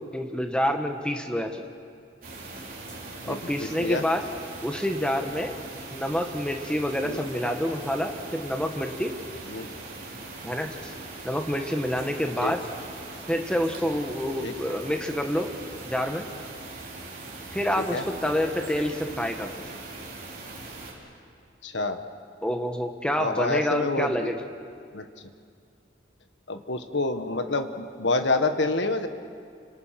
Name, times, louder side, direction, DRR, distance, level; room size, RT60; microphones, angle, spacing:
voice 1, 0.1-1.6 3.2-4.2 4.6-5.5 5.9-9.1 10.4-10.9 11.2-12.6 13.3-15.5 15.8-16.3 17.5-19.5 22.4-24.4, equal, 5° left, 4 dB, 1.5 m, -27 dB
sound 1, 2.2-20.9, right 2 dB, 45° right, 4.3 m, -41 dB
voice 2, 3.3-4.0 7.0-7.2 9.5-9.7 12.4-12.5 14.4-14.5 17.8-18.1 21.6-22.0 23.2-24.3 24.9-25.1 26.5-29.1, left 3 dB, 70° left, 8 dB, 1.5 m, -28 dB
30.0 x 26.0 x 6.0 m, 2.3 s
head